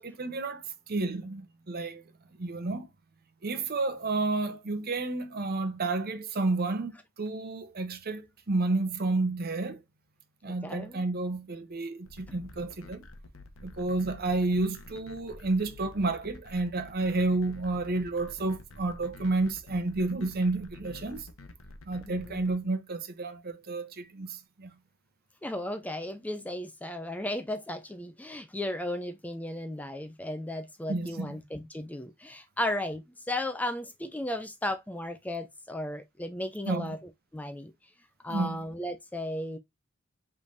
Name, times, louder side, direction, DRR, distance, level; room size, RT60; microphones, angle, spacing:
voice 1, 0.0-2.0 2.4-2.9 3.4-6.9 7.2-9.8 10.4-13.0 13.6-21.3 21.9-24.7 30.9-31.4 36.7-37.0 38.3-38.6, right 2 dB, 45° right, 0.8 m, -31 dB
voice 2, 10.4-11.0 22.0-22.5 25.4-37.0 37.3-37.7 38.2-39.6, left 1 dB, 5° left, 0.4 m, -35 dB
sound 1, 12.1-22.5, left 2 dB, 65° left, 0.9 m, -48 dB
5.2 x 3.3 x 2.6 m
head